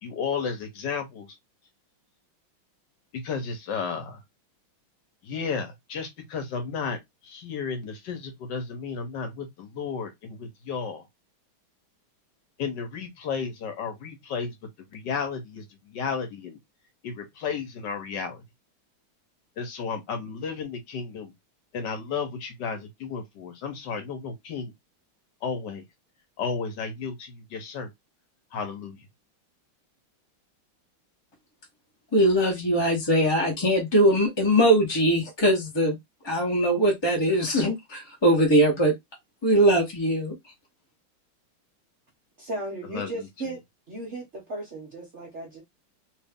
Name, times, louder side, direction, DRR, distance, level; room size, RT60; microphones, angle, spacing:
voice 1, 0.0-1.3 3.1-4.2 5.2-7.0 7.2-11.1 12.6-14.5 14.9-16.6 17.0-18.4 19.6-21.3 21.7-24.7 25.4-25.8 26.4-27.9 28.5-29.0 42.9-43.3, left 5 dB, 65° left, 1.4 m, -33 dB
voice 2, 32.1-36.0 36.2-38.9 39.4-40.3, right 1 dB, 25° left, 0.5 m, -21 dB
voice 3, 42.4-45.6, right 2 dB, 50° right, 0.9 m, -36 dB
3.1 x 2.8 x 3.5 m
omnidirectional pair, 2.3 m